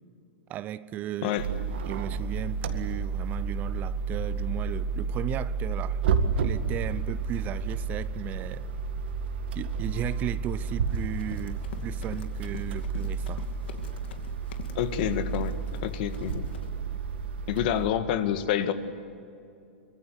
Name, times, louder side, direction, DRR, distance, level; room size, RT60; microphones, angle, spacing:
voice 1, 0.5-1.4 1.8-6.0 6.4-8.7 9.5-13.5, right 12 dB, 30° right, 0.7 m, -36 dB
sound 1, 1.4-17.9, right 5 dB, 75° right, 2.0 m, -31 dB
Run, 10.9-16.7, left 6 dB, 75° left, 2.4 m, -46 dB
voice 2, 14.8-16.5 17.5-18.7, left 10 dB, 55° left, 1.9 m, -28 dB
24.0 x 22.5 x 8.5 m
hypercardioid pair, 135°, 6 cm